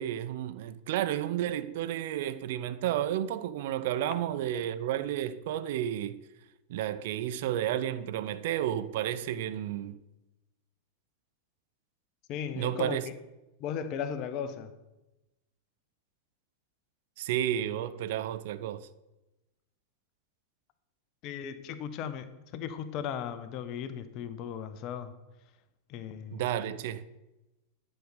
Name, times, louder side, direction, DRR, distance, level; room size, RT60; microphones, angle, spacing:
voice 1, 0.0-6.2 6.7-10.0 12.5-13.0 17.2-18.9 26.3-27.0, right 11 dB, 50° right, 0.4 m, -32 dB
voice 2, 12.3-13.0 13.6-14.7 21.2-25.1 25.9-26.4, left 8 dB, 40° left, 0.7 m, -36 dB
10.5 x 5.4 x 5.2 m
figure-of-eight pair, 90°, 0 cm